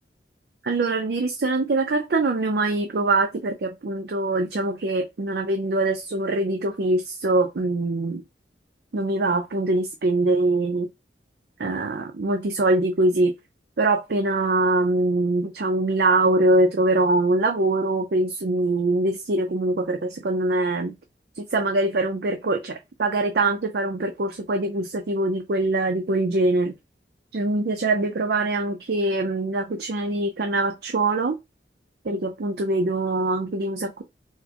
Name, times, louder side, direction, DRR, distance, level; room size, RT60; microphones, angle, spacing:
voice 1, 0.6-8.2 8.9-10.9 11.6-13.3 13.8-21.0 21.4-26.7 27.3-31.4 32.0-34.0, right 2 dB, 60° right, 0.5 m, -23 dB
4.6 x 2.1 x 2.8 m
head